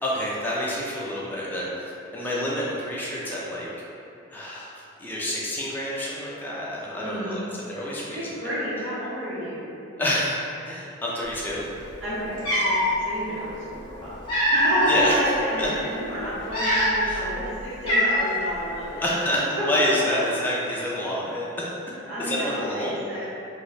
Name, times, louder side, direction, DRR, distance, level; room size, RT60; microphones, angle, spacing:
voice 1, 0.0-3.7 4.3-7.4 7.7-8.3 10.0-10.4 10.7-11.7 14.9-15.2 15.6-15.7 17.0-17.2 19.0-21.7 22.2-23.0, left 1 dB, 10° left, -6 dB, 0.4 m, -28 dB
voice 2, 6.9-7.4 8.1-9.7 12.0-19.0 22.1-23.3, equal, 60° right, -12 dB, 0.8 m, -31 dB
Cat, 11.9-12.0 12.4-12.9 13.9-15.1 15.6-15.8 16.4-17.2 17.4-17.5 17.9-18.5, equal, 25° left, 0.8 m, -22 dB
3.0 x 2.1 x 3.9 m, 2.9 s
head